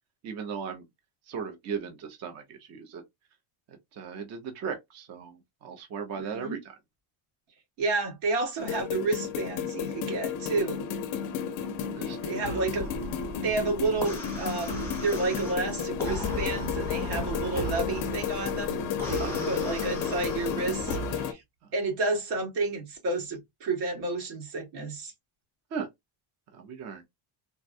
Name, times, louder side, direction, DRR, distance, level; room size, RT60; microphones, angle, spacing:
voice 1, 0.2-0.8 1.3-3.0 3.7-6.6 11.9-12.4 19.2-20.1 25.7-25.9 26.5-27.0, right 6 dB, 35° right, 0.5 m, -37 dB
voice 2, 6.2-6.6 7.8-10.8 12.2-12.9 13.4-21.4 21.7-25.1, right 3 dB, 85° right, 1.7 m, -31 dB
sound 1, 8.6-21.3, left 7 dB, 40° left, 0.4 m, -33 dB
sound 2, 12.4-12.8 14.7-15.0 16.3-16.5 17.5-18.0 19.1-19.7 20.9-21.3, right 4 dB, 50° right, 1.1 m, -38 dB
sound 3, 12.7-21.0, left 2 dB, 5° left, 0.7 m, -38 dB
3.4 x 2.1 x 2.5 m
cardioid pair, 175°, 50 cm